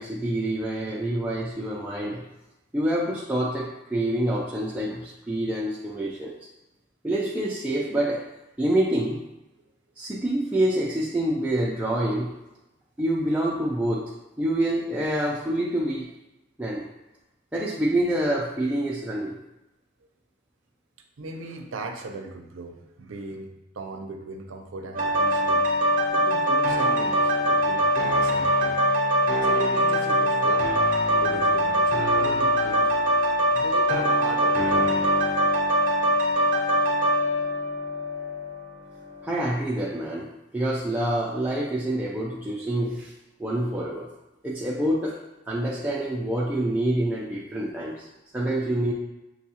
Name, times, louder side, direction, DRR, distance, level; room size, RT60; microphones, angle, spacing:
voice 1, 0.0-2.2 2.7-6.3 7.0-8.2 8.6-9.2 10.0-12.3 13.0-14.1 14.4-16.1 16.6-16.8 17.5-19.3 39.2-40.3 40.5-43.1 43.4-44.1 44.4-45.2 45.5-48.1 48.3-48.9, right 1 dB, 10° right, -5 dB, 0.3 m, -26 dB
voice 2, 21.2-25.7 26.1-28.8 29.4-30.8 31.1-33.1 33.5-35.1 38.8-38.9, right 3 dB, 85° right, 5 dB, 0.5 m, -38 dB
sound 1, 24.9-38.7 39.1-39.2, equal, 40° right, 0.7 m, -22 dB
6.0 x 2.3 x 2.8 m, 0.96 s
head